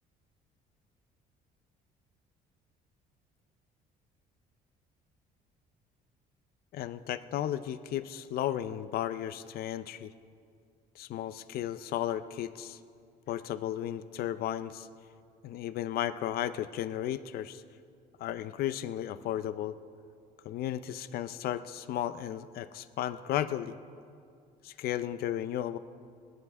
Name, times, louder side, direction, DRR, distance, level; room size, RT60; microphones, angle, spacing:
voice 1, 6.7-10.1 11.0-12.8 13.3-14.9 15.4-17.6 18.2-19.8 20.4-23.7 24.6-25.8, left 11 dB, 65° left, 13 dB, 0.5 m, -34 dB
19.5 x 10.5 x 3.6 m, 2.3 s
cardioid pair, 110°, 17 cm